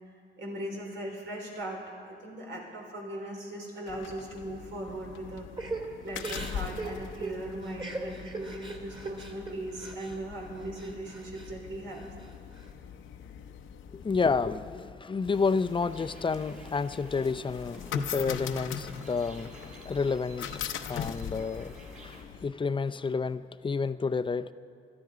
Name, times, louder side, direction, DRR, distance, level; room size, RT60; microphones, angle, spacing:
voice 1, 0.4-1.8 2.1-5.5 6.0-12.0, right 1 dB, 80° right, -1 dB, 4.2 m, -39 dB
sound 1, 3.9-22.4, left 8 dB, 90° left, 0.8 m, -41 dB
Crying sobbing / Breathing, 5.6-10.2 10.5-11.5 11.9-12.7, right 2 dB, 25° right, 2.2 m, -40 dB
voice 2, 13.9-21.8 22.0-24.5, left 4 dB, 25° left, 11 dB, 0.5 m, -30 dB
sound 2, 15.3-22.2, right 2 dB, 40° right, 3.2 m, -51 dB
21.0 x 13.5 x 5.0 m, 2.4 s
cardioid pair, 100°, 20 cm